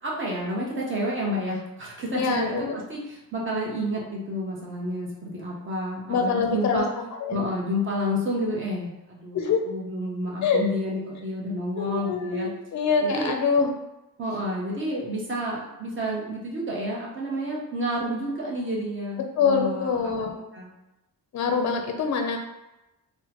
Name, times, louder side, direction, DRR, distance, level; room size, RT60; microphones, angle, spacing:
voice 1, 0.0-6.9 7.3-9.4 9.7-12.5 13.0-13.4 14.2-20.0 20.5-20.7, equal, 30° right, -3 dB, 0.8 m, -30 dB
voice 2, 2.1-2.8 6.1-7.4 9.3-9.6 10.4-10.6 11.8-13.7 19.4-20.4 21.3-22.4, left 5 dB, 45° left, 4 dB, 0.5 m, -25 dB
3.5 x 2.1 x 2.9 m, 0.96 s
wide cardioid pair, 150°, 39 cm